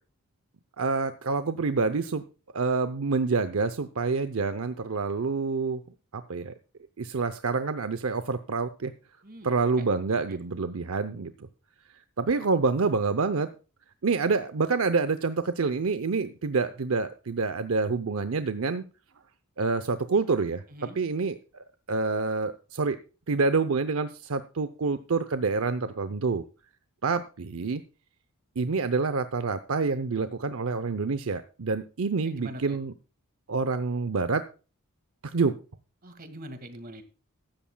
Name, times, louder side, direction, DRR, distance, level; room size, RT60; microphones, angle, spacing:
voice 1, 0.8-2.2 2.5-5.8 6.1-6.5 7.0-8.9 9.4-11.3 12.2-13.5 14.0-18.9 19.6-20.6 21.0-23.0 23.3-26.4 27.0-27.8 28.6-32.9 33.5-34.4 35.2-35.5, right 4 dB, 70° right, 11 dB, 0.7 m, -27 dB
voice 2, 9.2-9.9 10.3-10.4 20.7-21.0 32.2-32.8 36.0-37.0, right 1 dB, 40° right, 9 dB, 1.9 m, -43 dB
16.0 x 13.0 x 2.3 m, 0.34 s
head